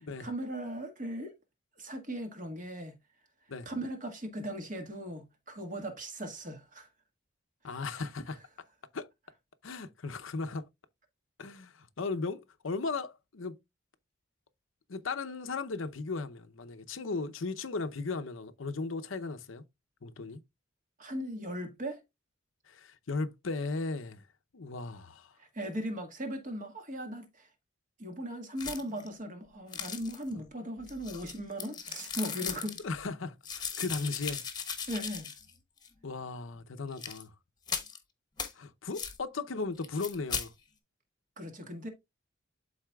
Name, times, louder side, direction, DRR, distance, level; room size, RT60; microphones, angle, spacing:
voice 1, 0.0-1.3 1.8-2.9 3.6-6.9 7.9-8.0 21.0-22.0 25.4-27.5 28.0-32.8 34.9-35.3 41.4-41.9, equal, 40° right, 1.7 m, -38 dB
voice 2, 7.6-8.4 8.9-9.1 9.6-10.6 11.4-13.6 14.9-19.6 20.0-20.4 22.7-24.2 24.5-25.3 32.5-32.6 32.8-34.4 36.0-37.3 38.6-40.5, left 3 dB, 80° left, 0.7 m, -36 dB
sound 1, 28.6-29.1 29.7-30.3 30.9-32.8 33.4-35.5 35.8-35.9 36.9-37.2 37.7-38.0 38.4-38.5 38.9-39.2 39.8-40.5, left 6 dB, 20° left, 1.1 m, -38 dB
12.0 x 4.1 x 2.3 m
head